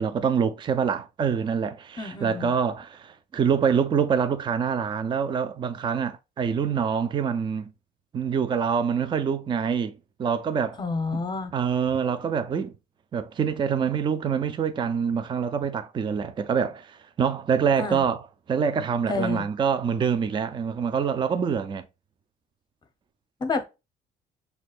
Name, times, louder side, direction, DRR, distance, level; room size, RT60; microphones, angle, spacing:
voice 1, 0.0-7.7 8.1-10.8 11.1-11.2 11.5-12.7 13.1-18.2 18.5-21.9, right 7 dB, 30° right, 0.4 m, -25 dB
voice 2, 2.0-2.5 10.8-11.5 17.8-18.0 19.1-19.4 23.4-23.7, left 4 dB, 25° left, 0.8 m, -29 dB
6.1 x 2.3 x 2.4 m
cardioid pair, 110°, 17 cm